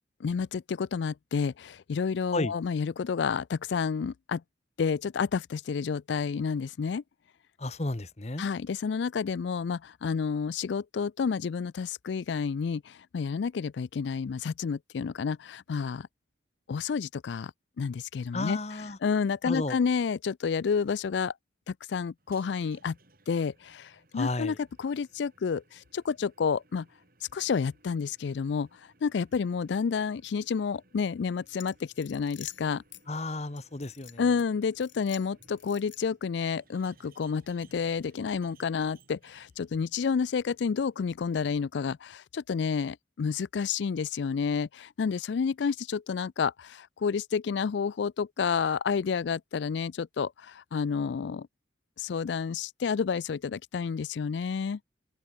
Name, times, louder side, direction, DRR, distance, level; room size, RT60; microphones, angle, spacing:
voice 1, 0.2-4.4 4.8-7.0 8.4-16.1 16.7-17.5 17.8-18.6 19.0-21.3 21.7-23.0 23.3-26.9 27.3-28.7 29.0-32.8 34.2-51.5 52.0-54.8, left 6 dB, 70° left, 0.4 m, -30 dB
voice 2, 7.6-8.5 18.3-19.0 19.4-19.8 24.1-24.6 33.1-34.3, left 2 dB, 35° left, 1.0 m, -33 dB
sound 1, 22.2-41.6, right 3 dB, 50° right, 7.9 m, -63 dB
sound 2, 31.6-33.0 33.6-34.4 34.8-36.2, left 13 dB, 85° left, 4.1 m, -48 dB
open air
head